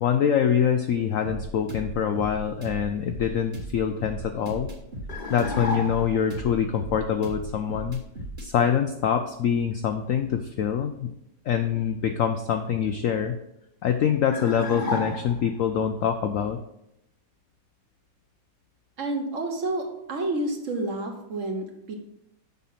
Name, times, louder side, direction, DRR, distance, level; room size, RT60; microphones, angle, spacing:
voice 1, 0.0-4.7 5.3-8.0 8.4-11.1 11.5-13.4 13.8-16.6, left 8 dB, 85° left, 7 dB, 0.7 m, -25 dB
sound 1, 1.2-8.5, right 1 dB, 30° right, 1.2 m, -37 dB
sound 2, 5.1-6.3 14.3-15.6, left 1 dB, 35° left, 0.8 m, -32 dB
voice 2, 19.0-21.9, right 2 dB, 50° right, 3 dB, 1.3 m, -29 dB
7.5 x 5.5 x 5.8 m, 0.82 s
omnidirectional pair, 2.0 m